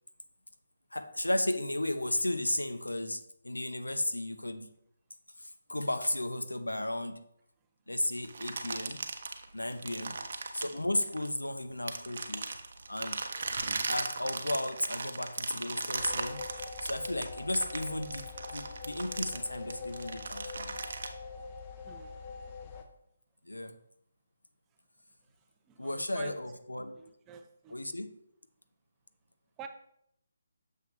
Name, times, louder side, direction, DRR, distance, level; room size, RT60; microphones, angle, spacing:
voice 1, 0.9-4.7 5.4-7.2 7.9-9.0 9.5-10.2 10.5-12.5 12.9-13.2 13.9-16.4 16.8-20.8 23.4-23.7 25.8-26.9 27.7-28.1, left 1 dB, 85° left, 8 dB, 0.7 m, -34 dB
sound 1, 8.2-11.4 11.9-21.1, right 4 dB, 50° right, 0.8 m, -37 dB
sound 2, 16.0-22.8, left 4 dB, 25° left, 0.8 m, -44 dB
voice 2, 25.7-26.3 27.0-27.8 29.6-29.7, right 7 dB, 15° right, 6 dB, 0.5 m, -49 dB
6.9 x 6.0 x 3.1 m, 0.74 s
figure-of-eight pair, 145°, 0 cm